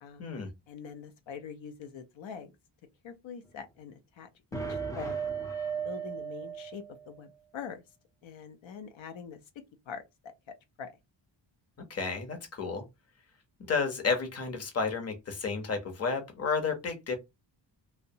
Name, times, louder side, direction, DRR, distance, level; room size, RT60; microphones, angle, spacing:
voice 1, 0.7-2.5 3.0-5.2 5.8-7.8 8.2-9.4 9.9-10.3 10.8-10.9, left 7 dB, 75° left, 0.6 m, -44 dB
sound 1, 4.5-7.2, right 6 dB, 10° left, 0.4 m, -36 dB
voice 2, 11.9-12.8 13.7-17.2, left 5 dB, 35° left, 0.7 m, -31 dB
2.7 x 2.1 x 2.6 m
wide cardioid pair, 155°, 46 cm